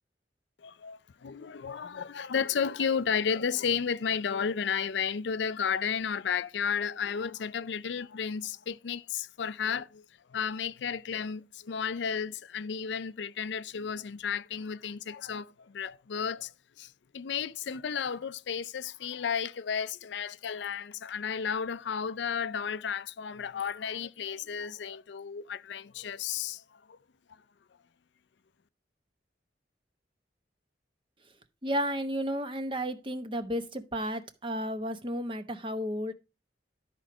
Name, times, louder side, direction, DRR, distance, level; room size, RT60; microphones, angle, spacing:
voice 1, 0.6-10.0 10.3-16.5 16.8-27.0, left 7 dB, 75° left, 0.5 m, -33 dB
voice 2, 31.6-36.1, equal, 25° right, 0.9 m, -32 dB
12.5 x 4.6 x 4.9 m
head